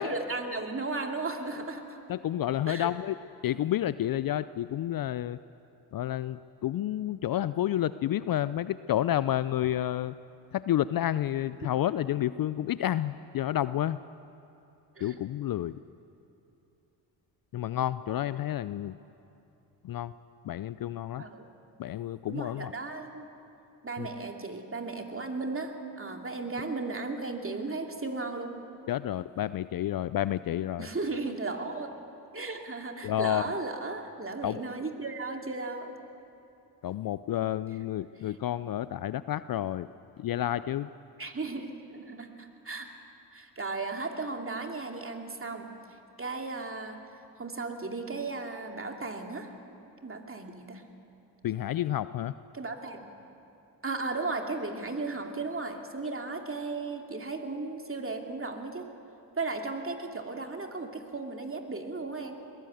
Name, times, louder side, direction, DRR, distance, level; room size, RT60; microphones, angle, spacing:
voice 1, 0.0-2.0 2.7-2.9 14.9-15.2 21.2-21.5 22.3-23.3 23.8-28.6 30.8-31.9 32.3-35.9 41.2-42.9 43.3-45.8 46.2-47.0 47.4-49.5 50.0-50.8 52.5-53.1 53.8-58.9 59.4-62.4, right 3 dB, 25° right, 3 dB, 2.6 m, -35 dB
voice 2, 2.1-3.1 3.4-5.4 5.9-10.1 10.5-14.0 15.0-15.8 17.5-19.0 19.8-20.1 20.4-21.2 21.8-22.7 24.0-24.1 28.9-30.9 33.0-33.4 34.4-34.6 36.8-39.9 40.2-40.9 51.4-52.3, left 12 dB, 45° left, 16 dB, 0.6 m, -30 dB
21.5 x 16.5 x 8.0 m, 2.8 s
hypercardioid pair, 50°, 49 cm